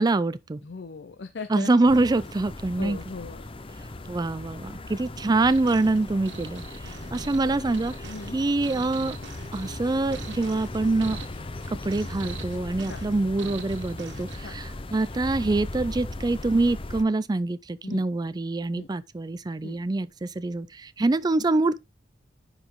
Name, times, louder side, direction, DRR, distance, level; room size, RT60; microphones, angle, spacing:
voice 1, 0.0-0.6 1.5-3.0 4.1-9.2 9.5-11.2 11.7-21.8, right 2 dB, 20° right, 0.4 m, -25 dB
voice 2, 0.6-1.7 2.8-3.4 8.0-8.4 12.8-13.0 14.4-14.5 17.8-18.0 18.7-18.9 19.6-19.8, left 4 dB, 65° left, 0.6 m, -38 dB
sound 1, 1.9-17.0, left 2 dB, 30° left, 0.7 m, -38 dB
sound 2, 4.2-16.5, left 1 dB, 80° left, 2.5 m, -49 dB
sound 3, 5.4-14.4, right 5 dB, 75° right, 0.9 m, -43 dB
9.7 x 5.0 x 3.7 m
head